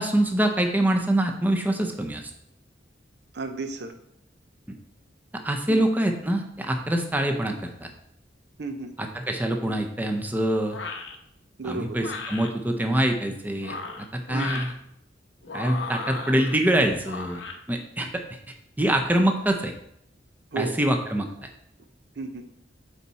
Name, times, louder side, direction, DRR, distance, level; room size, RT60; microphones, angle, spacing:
voice 1, 0.0-2.3 5.4-7.9 9.0-10.8 11.6-14.7 15.5-17.4 17.7-18.2 18.8-19.7 20.6-21.5, right 1 dB, 10° right, 3 dB, 0.7 m, -25 dB
voice 2, 3.3-3.9 5.7-5.8 8.6-8.9 11.6-12.0 14.3-14.6 20.5-20.8 22.2-22.5, right 4 dB, 65° right, 7 dB, 0.7 m, -33 dB
sound 1, 10.7-11.1 12.0-12.5 13.5-14.7 15.4-16.6 17.0-17.6, left 3 dB, 75° left, 0.9 m, -35 dB
8.3 x 4.1 x 4.2 m, 0.74 s
head